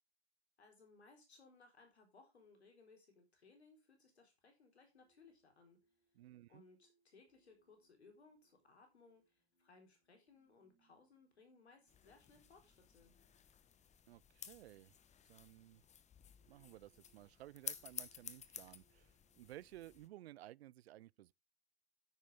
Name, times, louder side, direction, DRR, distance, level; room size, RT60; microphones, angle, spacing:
voice 1, 0.6-5.8 6.5-13.1, left 4 dB, 90° left, 4.1 m, -65 dB
sound 1, 4.9-20.2, right 5 dB, 55° left, 5.4 m, -83 dB
voice 2, 6.1-6.6 14.1-14.9 15.3-15.8 16.5-21.3, right 15 dB, 75° right, 0.5 m, -56 dB
sound 2, 11.9-20.1, left 8 dB, 20° left, 1.0 m, -53 dB
9.7 x 9.1 x 3.5 m
hypercardioid pair, 95°, 32 cm